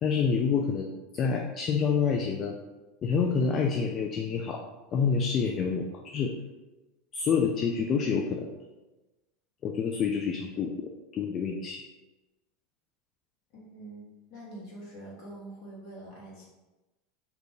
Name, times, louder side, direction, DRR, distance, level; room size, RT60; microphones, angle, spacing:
voice 1, 0.0-2.6 3.0-4.6 4.9-6.3 7.1-8.5 9.6-11.8, left 6 dB, 40° left, 2 dB, 0.4 m, -28 dB
voice 2, 13.5-14.0 14.3-16.4, right 1 dB, 55° left, -4 dB, 1.4 m, -45 dB
2.9 x 2.5 x 3.6 m, 1.1 s
hypercardioid pair, 85°, 0 cm